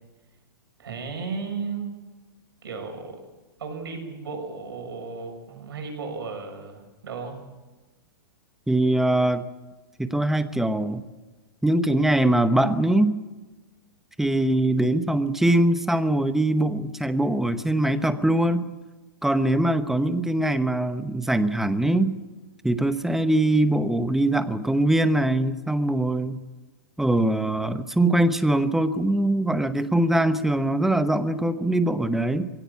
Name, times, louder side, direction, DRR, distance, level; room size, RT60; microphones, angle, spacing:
voice 1, 0.8-2.0 2.6-3.2 3.6-7.4, right 4 dB, 85° right, 4 dB, 6.7 m, -34 dB
voice 2, 8.7-9.4 10.0-11.0 11.6-13.2 14.2-18.7 19.2-22.2 22.6-26.4 27.0-32.5, right 1 dB, 5° right, 11 dB, 0.9 m, -22 dB
22.0 x 17.0 x 8.5 m, 1.2 s
hypercardioid pair, 140°, 12 cm